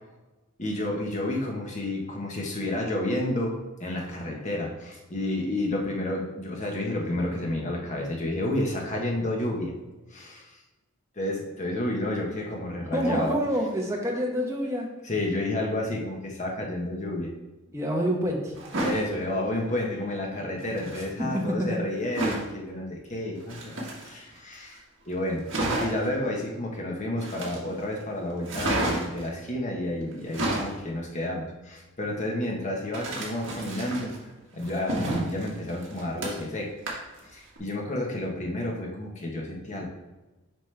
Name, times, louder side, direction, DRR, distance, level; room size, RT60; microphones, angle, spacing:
voice 1, 0.6-9.7 10.1-10.6 11.2-13.4 15.0-17.3 18.8-24.8 25.1-25.5 25.8-34.1 34.5-36.7 37.2-39.8, left 1 dB, 35° left, 0 dB, 1.2 m, -30 dB
voice 2, 12.9-14.9 17.7-18.5 21.0-21.8, equal, 15° right, -1 dB, 1.1 m, -27 dB
sound 1, 18.5-19.0 20.6-21.1 22.1-22.5 23.4-24.4 24.8-24.9 25.1-25.2 25.5-26.1 27.2-27.8 28.5-29.3 30.1-30.8 32.9-34.2 34.6-36.6 36.9-37.2 37.6-37.7, right 1 dB, 60° right, 1.8 m, -30 dB
7.6 x 5.1 x 3.4 m, 1.1 s
head